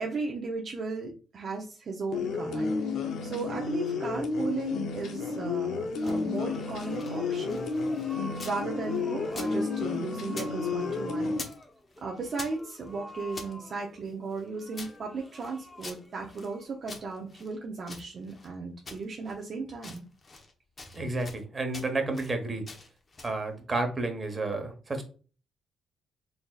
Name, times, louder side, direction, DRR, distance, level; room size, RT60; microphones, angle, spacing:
voice 1, 0.0-2.9 3.2-7.6 8.4-11.4 12.0-20.0, right 4 dB, 50° right, 0 dB, 0.7 m, -36 dB
sound 1, 2.1-11.4, left 4 dB, 70° left, 0.7 m, -31 dB
sound 2, 5.8-8.6 8.9-10.5 10.8-11.6 11.9-13.5 14.1-16.5 16.9-18.5 18.9-19.4 19.7-20.5 20.8-21.4 21.7-22.3 22.7-23.4, left 3 dB, 35° left, 1.0 m, -46 dB
sound 3, 6.1-17.1, left 1 dB, 10° left, 0.8 m, -47 dB
voice 2, 20.9-22.6 23.2-25.0, right 2 dB, 30° right, 5 dB, 1.1 m, -31 dB
4.1 x 3.5 x 2.4 m, 0.37 s
cardioid pair, 90°, 0 cm